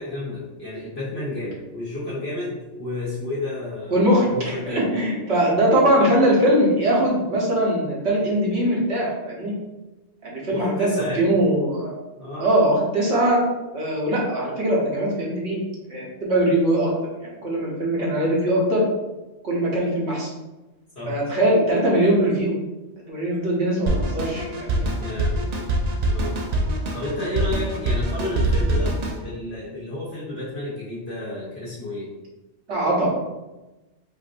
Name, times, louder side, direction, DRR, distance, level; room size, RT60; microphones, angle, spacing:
voice 1, 0.0-4.9 10.5-11.4 12.2-12.5 20.9-21.4 25.0-25.4 26.1-26.3 26.9-28.9 29.2-32.1, left 2 dB, 60° left, -12 dB, 1.7 m, -31 dB
voice 2, 3.9-9.5 10.2-11.9 12.4-13.4 13.7-15.6 15.9-16.9 17.4-18.8 19.4-20.3 21.1-22.6 23.1-24.9 32.7-33.1, right 1 dB, 65° right, -4 dB, 1.3 m, -21 dB
Drum kit, 23.9-29.2, right 1 dB, 50° right, 0.5 m, -24 dB
5.2 x 2.6 x 2.6 m, 1.1 s
omnidirectional pair, 1.2 m